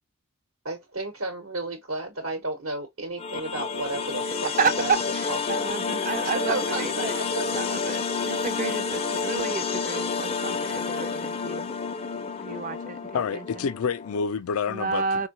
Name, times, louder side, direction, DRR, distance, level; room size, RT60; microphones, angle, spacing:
voice 1, 0.6-4.5 4.8-4.9 5.3-5.7 6.2-7.6, right 2 dB, 70° right, 1.0 m, -33 dB
sound 1, 3.2-14.2, left 5 dB, 30° left, 0.4 m, -29 dB
voice 2, 4.4-7.2 7.5-11.7 12.4-13.5 14.7-15.3, right 5 dB, 40° right, 0.5 m, -30 dB
voice 3, 13.1-15.3, left 6 dB, 90° left, 0.4 m, -28 dB
4.5 x 2.2 x 2.7 m
head